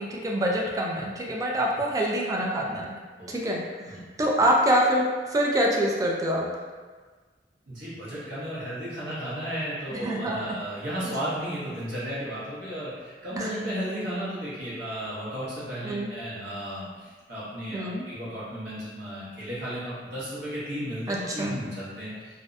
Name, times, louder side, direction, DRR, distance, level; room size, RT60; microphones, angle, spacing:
voice 1, 0.0-2.9 3.3-5.0 5.3-6.5 10.0-10.6 13.4-13.5 15.8-16.1 17.7-18.0 21.1-21.6, right 1 dB, 20° right, -2 dB, 0.3 m, -25 dB
voice 2, 7.7-22.4, equal, 75° right, -10 dB, 1.0 m, -34 dB
2.5 x 2.1 x 2.5 m, 1.4 s
head